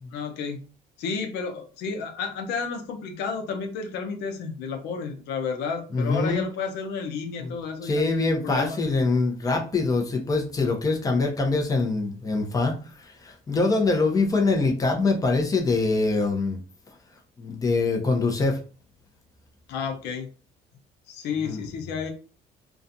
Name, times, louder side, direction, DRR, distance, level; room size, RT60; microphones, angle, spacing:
voice 1, 0.1-0.6 1.0-8.8 19.7-20.3 21.1-22.1, left 5 dB, 85° left, 5 dB, 0.6 m, -31 dB
voice 2, 5.9-6.5 7.4-7.5 7.8-16.6 17.4-18.6 21.4-21.6, left 3 dB, 20° left, 2 dB, 0.7 m, -24 dB
2.4 x 2.3 x 2.6 m, 0.36 s
cardioid pair, 110°, 17 cm